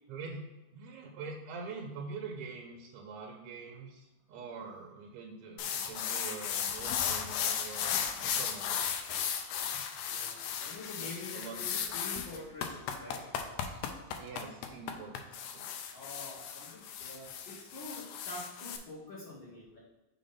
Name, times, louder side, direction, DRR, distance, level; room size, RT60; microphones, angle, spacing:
voice 1, 0.1-0.4 0.7-8.8 11.0-11.8 13.6-13.8 14.2-15.7, right 4 dB, 80° right, 1 dB, 1.8 m, -45 dB
sound 1, 5.6-18.8, left 8 dB, 80° left, 1.7 m, -35 dB
voice 2, 10.1-13.3 15.9-19.8, left 2 dB, 60° left, -6 dB, 1.3 m, -47 dB
5.1 x 3.6 x 5.4 m, 1.1 s
omnidirectional pair, 3.5 m